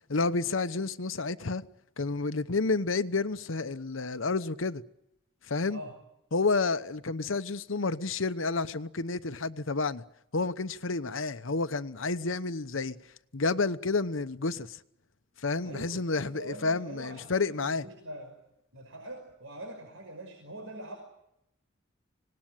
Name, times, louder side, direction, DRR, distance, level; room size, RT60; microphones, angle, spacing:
voice 1, 0.1-1.7 2.0-4.8 5.5-5.8 6.3-10.0 10.3-13.0 13.3-14.8 15.4-17.9, left 3 dB, 80° left, 1.0 m, -30 dB
voice 2, 15.6-18.3 18.7-21.0, right 1 dB, 85° right, 5.8 m, -43 dB
26.5 x 19.0 x 9.0 m
head